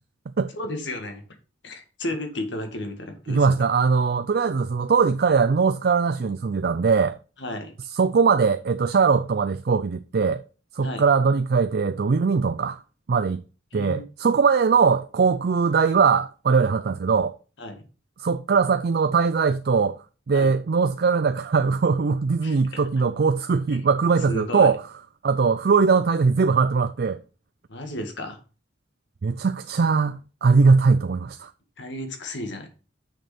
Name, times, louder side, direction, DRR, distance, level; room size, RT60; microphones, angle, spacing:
voice 1, 0.5-1.2 1.6-3.5 7.4-7.7 10.8-11.0 13.7-14.0 17.6-17.8 20.3-20.6 22.4-22.8 23.7-23.8 24.3-24.7 27.7-28.4 31.8-32.7, left 1 dB, 70° left, 1.9 m, -33 dB
voice 2, 3.3-7.2 7.9-10.4 10.7-12.8 13.1-13.4 13.7-17.3 18.2-20.0 20.3-24.8 25.2-27.2 29.2-31.5, right 5 dB, 55° right, 0.4 m, -21 dB
6.4 x 6.4 x 5.0 m
head